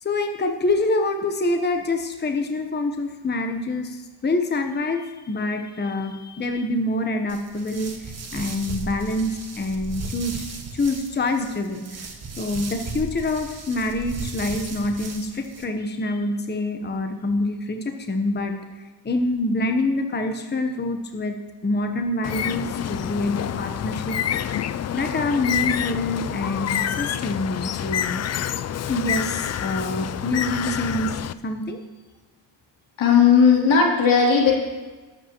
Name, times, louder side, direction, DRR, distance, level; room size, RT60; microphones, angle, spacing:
voice 1, 0.0-12.1 12.4-21.4 21.6-24.2 24.9-28.2 28.9-31.8, left 2 dB, 20° left, 5 dB, 1.0 m, -26 dB
sound 1, 7.3-15.6, right 3 dB, 35° right, 1.6 m, -36 dB
Bird, 22.2-31.3, left 9 dB, 35° left, 0.4 m, -27 dB
voice 2, 33.0-34.6, left 6 dB, 75° left, -2 dB, 3.1 m, -16 dB
19.5 x 8.2 x 3.0 m, 1.3 s
cardioid pair, 95°, 47 cm